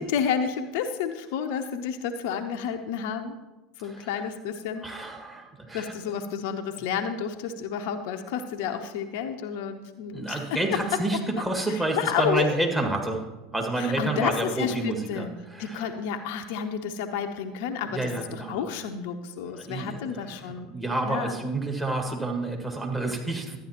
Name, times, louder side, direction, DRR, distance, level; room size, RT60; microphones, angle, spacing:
voice 1, 0.0-3.4 3.8-4.9 5.7-10.4 10.7-10.8 11.7-12.5 13.8-15.3 15.6-20.7 21.0-21.4, left 7 dB, 65° left, 6 dB, 0.6 m, -30 dB
voice 2, 3.8-4.2 4.8-5.9 10.1-13.3 13.5-15.9 17.9-18.6 19.5-23.6, right 2 dB, 15° right, 1 dB, 1.9 m, -29 dB
12.5 x 9.5 x 2.9 m, 1.1 s
figure-of-eight pair, 75°, 0 cm